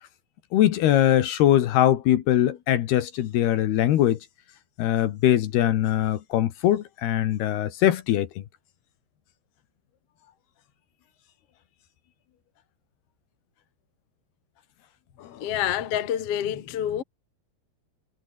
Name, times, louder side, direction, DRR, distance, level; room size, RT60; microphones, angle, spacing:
voice 1, 0.5-4.2 4.8-8.3 15.2-15.4, left 12 dB, 70° left, 3.1 m, -22 dB
voice 2, 15.4-17.0, left 10 dB, 50° left, 2.0 m, -27 dB
omnidirectional pair, 5.3 m